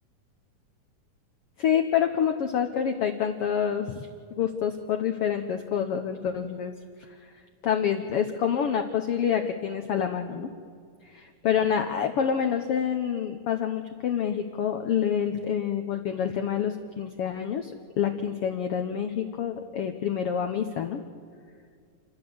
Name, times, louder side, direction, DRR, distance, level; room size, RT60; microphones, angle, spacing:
voice 1, 1.6-6.7 7.0-7.1 7.6-10.5 11.0-17.7 18.0-21.0, left 8 dB, 90° left, 6 dB, 1.3 m, -27 dB
30.0 x 11.5 x 7.8 m, 2.2 s
omnidirectional pair, 3.8 m